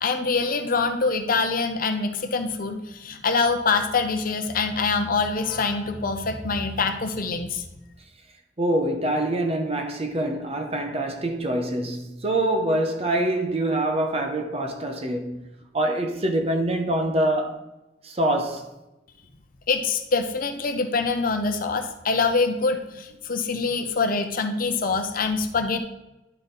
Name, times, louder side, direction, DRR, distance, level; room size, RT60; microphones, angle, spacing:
voice 1, 0.0-7.6 19.7-25.8, left 4 dB, 50° left, 0.7 m, -25 dB
voice 2, 8.6-15.4 15.7-17.6 18.0-18.7, right 1 dB, 35° right, 0.9 m, -25 dB
11.0 x 4.0 x 4.0 m
head